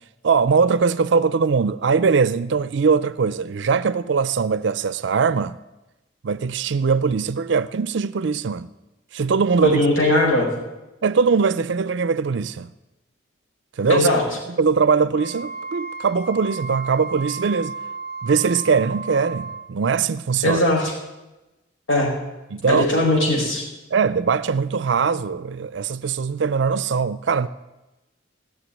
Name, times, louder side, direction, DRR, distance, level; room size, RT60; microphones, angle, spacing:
voice 1, 0.2-5.6 6.2-8.7 9.1-9.8 11.0-12.7 13.8-14.1 14.6-17.8 18.2-20.6 22.5-22.9 23.9-27.5, right 5 dB, 60° right, 0.4 m, -21 dB
voice 2, 9.6-10.5 13.9-14.2 20.4-20.9 21.9-22.1 22.7-23.6, left 1 dB, 85° left, 4.9 m, -19 dB
Wind instrument woodwind instrument, 15.1-19.7, right 4 dB, 35° left, 1.6 m, -34 dB
17.0 x 6.6 x 9.8 m
head